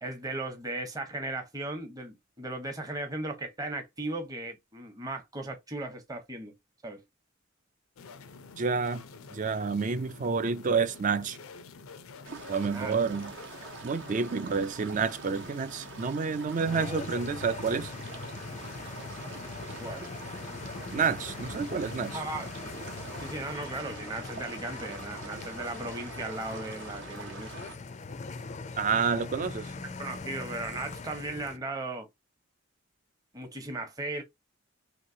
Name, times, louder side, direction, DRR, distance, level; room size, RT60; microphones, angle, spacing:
voice 1, 0.0-6.6 6.8-7.0 12.7-13.0 19.8-20.1 22.1-22.7 23.2-27.5 30.0-32.1 33.3-34.2, right 2 dB, 20° right, 0.8 m, -37 dB
sound 1, 8.0-23.6, left 4 dB, 85° left, 0.5 m, -49 dB
voice 2, 8.6-9.0 9.3-11.4 12.5-13.3 13.8-17.9 20.9-22.2 28.8-29.7, right 5 dB, 40° right, 0.4 m, -29 dB
sound 2, 12.2-27.8, right 4 dB, 60° right, 0.8 m, -45 dB
sound 3, 16.6-31.6, left 4 dB, 35° left, 0.4 m, -41 dB
3.0 x 2.9 x 2.7 m
head